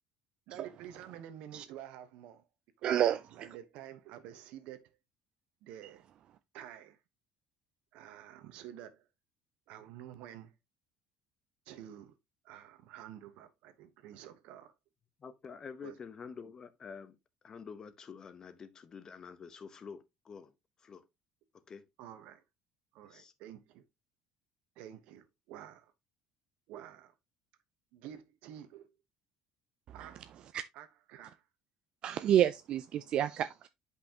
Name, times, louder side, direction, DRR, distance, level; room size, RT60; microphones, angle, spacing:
voice 1, 0.5-2.4 2.8-3.0 3.3-4.9 5.6-6.0 6.5-7.0 7.9-9.0 9.7-10.5 11.7-12.1 12.4-14.7 15.8-16.0 22.0-22.4 22.9-23.8 24.8-25.9 26.7-27.1 27.9-28.9 29.9-30.3 30.7-31.4, right 11 dB, 75° right, 1.0 m, -49 dB
voice 2, 2.8-3.2 30.0-30.1 30.5-30.6 32.0-33.7, right 10 dB, 50° right, 0.4 m, -29 dB
voice 3, 15.2-17.2 17.4-20.5 20.8-21.1 21.5-21.9 23.0-23.3, left 6 dB, 30° left, 0.8 m, -48 dB
8.0 x 5.5 x 2.8 m
cardioid pair, 130°, 2 cm